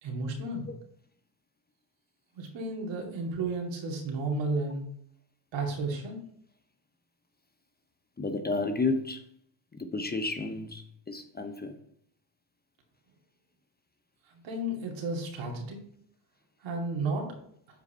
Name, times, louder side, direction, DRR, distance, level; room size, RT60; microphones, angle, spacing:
voice 1, 0.0-0.7 2.4-4.8 5.5-6.2 14.4-15.8 16.6-17.3, right 2 dB, 65° right, 0 dB, 2.6 m, -32 dB
voice 2, 8.2-9.3 9.7-11.8, left 3 dB, 20° left, 8 dB, 0.8 m, -32 dB
8.5 x 4.9 x 4.4 m, 0.67 s
supercardioid pair, 70°, 48 cm